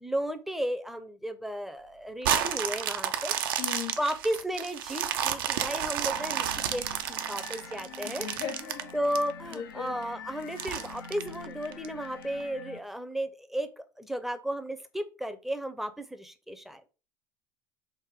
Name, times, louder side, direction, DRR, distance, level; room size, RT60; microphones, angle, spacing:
voice 1, 0.0-3.3 4.0-8.3 8.9-16.8, equal, ahead, 9 dB, 0.4 m, -34 dB
sound 1, 2.2-9.5 10.0-10.1 10.6-11.9 12.4-12.5, right 9 dB, 80° right, 0.4 m, -31 dB
voice 2, 3.6-3.9 8.0-8.9 9.5-10.0, left 8 dB, 70° left, 4 dB, 1.1 m, -37 dB
sound 2, 6.1-12.8, left 6 dB, 90° left, 0.4 m, -46 dB
3.3 x 2.1 x 3.5 m, 0.33 s
hypercardioid pair, 85°, 11 cm